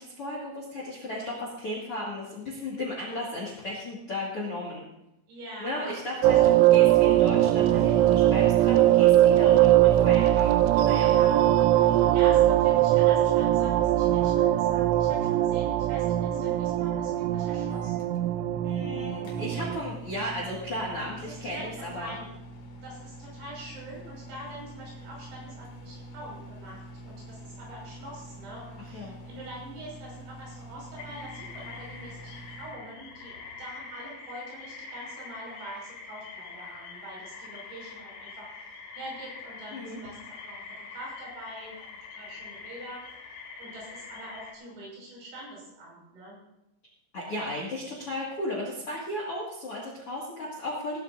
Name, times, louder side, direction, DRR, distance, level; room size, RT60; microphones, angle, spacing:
voice 1, 0.0-4.9 5.6-10.6 10.8-11.1 18.6-22.2 28.9-29.1 39.7-40.0 47.1-51.0, left 1 dB, 45° left, -2 dB, 1.9 m, -35 dB
voice 2, 5.3-6.3 11.0-11.4 11.8-18.0 21.0-22.3 22.8-38.5 38.9-41.8 42.1-43.1 43.6-46.4, right 1 dB, 65° right, -4 dB, 8.2 m, -44 dB
sound 1, 6.2-19.8, right 13 dB, 85° right, 2.8 m, -21 dB
Microwave oven, 17.7-32.8, right 1 dB, 65° left, 4.0 m, -45 dB
sound 2, 31.0-44.5, left 4 dB, 90° left, 5.3 m, -44 dB
19.5 x 12.5 x 2.7 m, 0.88 s
omnidirectional pair, 5.9 m